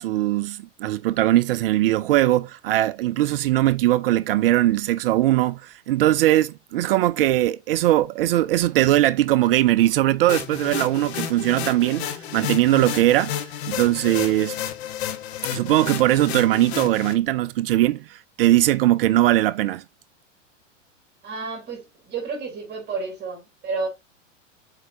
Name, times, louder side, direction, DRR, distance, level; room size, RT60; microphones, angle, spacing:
voice 1, 0.0-12.1 12.3-13.4 13.7-14.6 15.5-19.8, right 15 dB, 50° right, 0.5 m, -20 dB
sound 1, 10.3-17.1, left 10 dB, 55° left, 1.3 m, -31 dB
voice 2, 21.2-23.9, right 4 dB, 25° right, 3.3 m, -31 dB
7.4 x 4.6 x 2.8 m
figure-of-eight pair, 100°, 38 cm